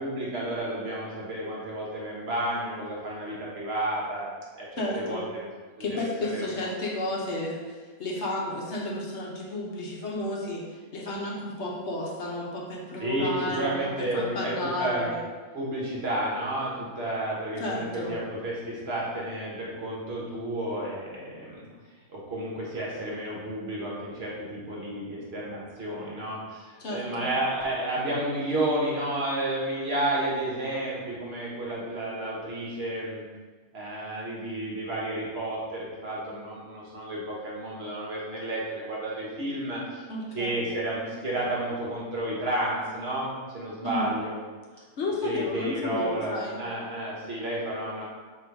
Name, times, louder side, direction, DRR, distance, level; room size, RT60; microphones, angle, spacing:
voice 1, 0.0-5.5 5.8-6.0 6.3-6.4 13.0-15.1 15.5-21.7 22.1-33.2 33.7-40.0 40.3-44.4 45.2-48.1, right 1 dB, 55° right, -5 dB, 1.3 m, -31 dB
voice 2, 4.8-5.2 5.8-15.2 17.6-18.1 26.8-27.3 40.1-40.6 43.8-44.1 45.0-46.6, left 1 dB, 60° left, -3 dB, 1.0 m, -32 dB
3.8 x 3.0 x 4.5 m, 1.4 s
omnidirectional pair, 1.4 m